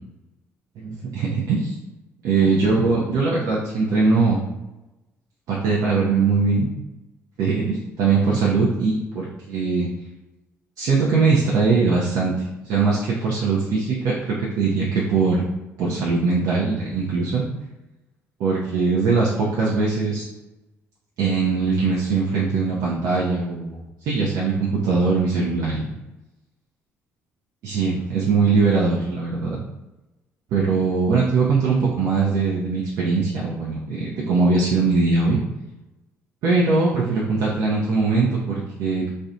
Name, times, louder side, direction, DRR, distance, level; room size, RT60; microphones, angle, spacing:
voice 1, 0.8-1.8 2.2-4.4 5.5-6.7 7.4-9.9 10.8-15.4 15.8-17.4 18.4-20.2 21.2-25.9 27.6-29.6 30.5-35.4 36.4-39.1, right 4 dB, 70° right, -4 dB, 0.5 m, -21 dB
2.5 x 2.1 x 2.4 m, 1.0 s
hypercardioid pair, 60°, 6 cm